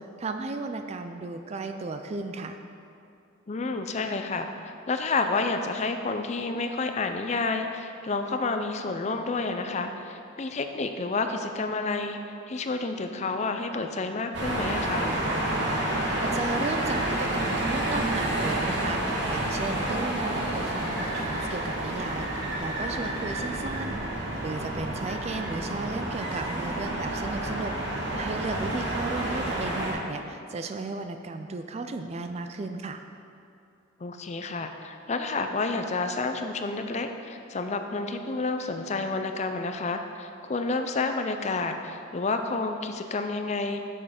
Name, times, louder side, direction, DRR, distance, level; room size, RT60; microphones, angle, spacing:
voice 1, 0.0-2.6 16.2-33.0, right 3 dB, 30° right, 7 dB, 0.3 m, -34 dB
voice 2, 3.5-12.2 12.5-15.1 34.0-43.8, left 3 dB, 35° left, 6 dB, 0.4 m, -30 dB
sound 1, 14.3-29.9, right 1 dB, 60° right, 1.8 m, -29 dB
6.9 x 6.3 x 5.8 m, 2.6 s
head